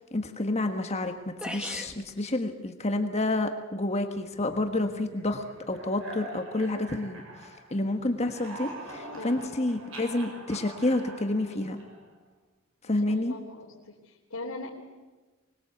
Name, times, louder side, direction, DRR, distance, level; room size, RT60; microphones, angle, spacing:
voice 1, 0.1-11.8 12.8-13.3, left 2 dB, 30° left, 6 dB, 1.4 m, -29 dB
sound 1, 1.4-2.0, equal, 5° right, 1.8 m, -36 dB
sound 2, 4.3-7.8 8.1-12.2, right 2 dB, 70° right, 6.1 m, -44 dB
voice 2, 9.1-9.5 13.0-14.7, left 2 dB, 85° left, -3 dB, 3.3 m, -41 dB
24.5 x 21.0 x 8.2 m, 1.3 s
head